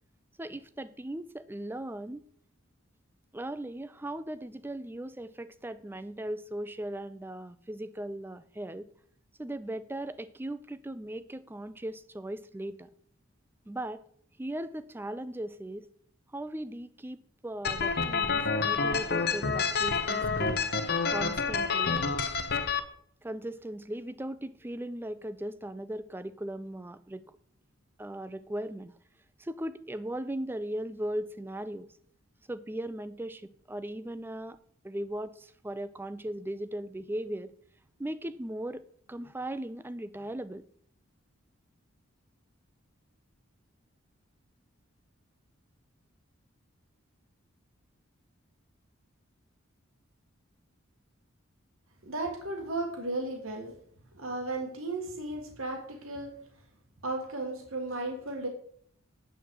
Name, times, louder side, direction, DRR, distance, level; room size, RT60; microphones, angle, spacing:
voice 1, 0.4-2.3 3.3-8.9 9.4-12.9 13.7-14.0 14.4-15.9 16.3-20.6 21.1-22.0 23.2-27.2 28.0-29.0 29.4-31.9 32.5-34.6 34.8-37.5 38.0-40.6, right 1 dB, 10° right, 14 dB, 0.3 m, -38 dB
sound 1, 17.6-22.8, left 5 dB, 50° left, 0.7 m, -28 dB
voice 2, 52.0-53.7 54.1-56.3 57.0-58.5, right 2 dB, 80° right, 3 dB, 1.7 m, -35 dB
9.1 x 7.5 x 4.6 m, 0.63 s
head